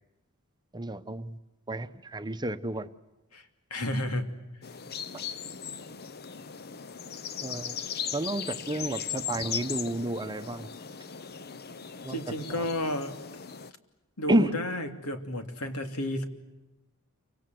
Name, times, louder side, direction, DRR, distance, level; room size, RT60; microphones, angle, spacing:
voice 1, 0.7-1.4 1.7-2.9 5.1-5.2 7.4-7.8 8.1-10.7 12.0-12.2 12.5-12.6 14.3-14.5, right 1 dB, 20° right, 10 dB, 0.9 m, -30 dB
voice 2, 3.7-4.4 12.1-13.2 14.2-16.3, left 1 dB, 80° left, 7 dB, 2.9 m, -31 dB
sound 1, 4.6-13.7, left 7 dB, 45° left, 0.9 m, -38 dB
29.0 x 25.5 x 7.8 m, 1.0 s
head